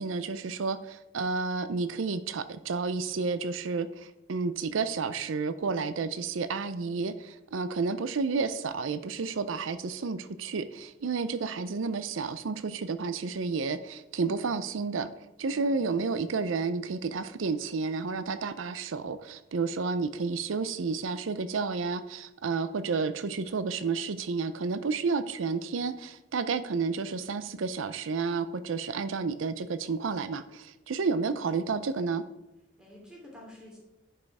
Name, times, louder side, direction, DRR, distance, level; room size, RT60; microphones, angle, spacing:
voice 1, 0.0-15.1 15.4-32.2, right 4 dB, 85° right, 12 dB, 0.5 m, -31 dB
voice 2, 9.2-9.7 11.0-11.5 15.5-15.9 30.9-31.4 32.8-33.8, left 1 dB, 5° right, -3 dB, 3.0 m, -52 dB
10.5 x 5.5 x 4.8 m, 0.96 s
head